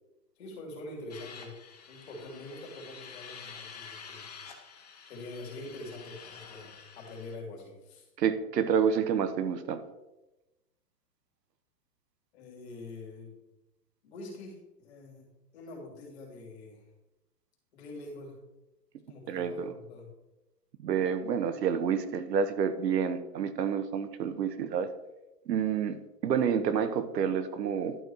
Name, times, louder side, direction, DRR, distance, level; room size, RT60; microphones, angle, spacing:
voice 1, 0.4-1.5 1.9-4.3 5.1-8.1 12.3-13.4 14.0-15.3 15.5-16.9 17.7-18.4 19.1-20.1, left 2 dB, 40° left, -1 dB, 2.8 m, -45 dB
sound 1, 1.1-7.4, left 6 dB, 25° left, 0.6 m, -48 dB
voice 2, 8.2-9.8 19.3-19.7 20.8-24.9 25.5-28.0, right 7 dB, 85° right, 11 dB, 1.0 m, -29 dB
11.5 x 4.6 x 4.6 m, 1.0 s
hypercardioid pair, 175°, 48 cm